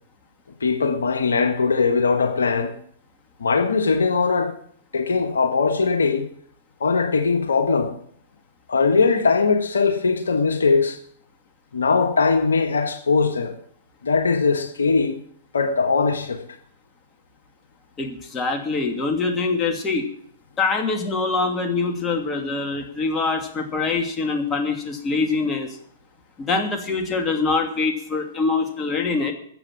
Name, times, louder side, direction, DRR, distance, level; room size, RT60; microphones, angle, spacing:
voice 1, 0.6-2.7 3.4-4.6 4.9-6.3 6.8-7.9 8.7-11.0 11.7-13.5 14.0-15.2 15.5-16.4, left 4 dB, 80° left, 1.6 m, -20 dB
voice 2, 18.0-20.1 20.6-25.7 26.5-29.3, left 4 dB, 20° left, 2.6 m, -24 dB
14.0 x 8.2 x 7.6 m
hypercardioid pair, 115°, 0 cm